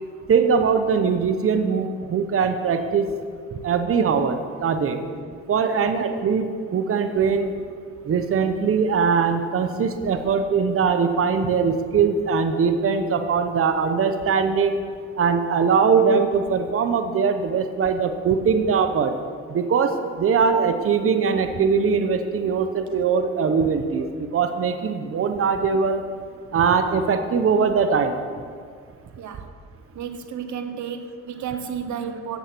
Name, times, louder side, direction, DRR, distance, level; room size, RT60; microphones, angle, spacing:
voice 1, 0.3-3.1 3.6-5.0 5.5-7.5 8.1-14.8 15.2-19.1 19.5-24.1 24.3-26.0 26.5-28.2, right 5 dB, 45° right, 7 dB, 1.0 m, -21 dB
voice 2, 29.2-29.5 29.9-32.4, right 7 dB, 70° right, 8 dB, 1.1 m, -32 dB
14.0 x 8.1 x 6.1 m, 2.1 s
cardioid pair, 90°, 30 cm